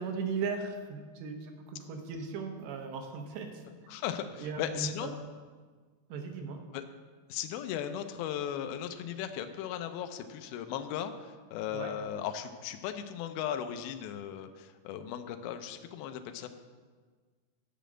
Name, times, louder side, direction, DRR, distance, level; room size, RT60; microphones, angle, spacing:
voice 1, 0.0-3.6 4.4-5.1 6.1-6.6 11.7-11.9, right 5 dB, 85° right, 3 dB, 3.2 m, -37 dB
voice 2, 3.9-5.2 6.7-6.8 7.3-16.5, left 9 dB, 80° left, 7 dB, 2.2 m, -37 dB
9.8 x 5.2 x 7.7 m, 1.5 s
omnidirectional pair, 4.9 m